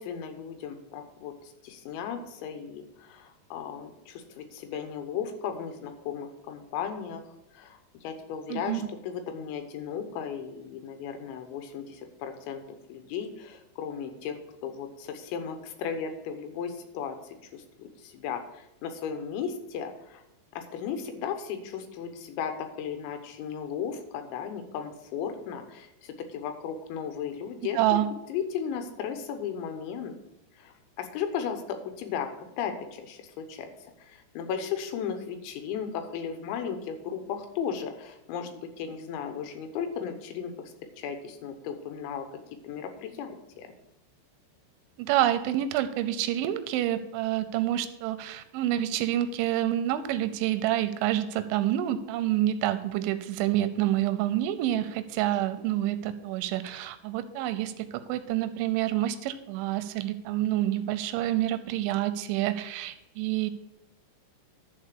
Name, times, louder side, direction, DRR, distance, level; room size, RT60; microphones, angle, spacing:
voice 1, 0.0-12.6 12.9-14.4 14.6-17.2 17.5-20.2 20.5-30.1 30.6-32.3 32.6-42.3 42.6-43.7, left 7 dB, 80° left, 7 dB, 3.3 m, -36 dB
voice 2, 8.5-8.8 27.8-28.1 45.0-63.5, right 13 dB, 90° right, 12 dB, 3.1 m, -28 dB
11.5 x 4.3 x 6.7 m, 0.89 s
omnidirectional pair, 5.3 m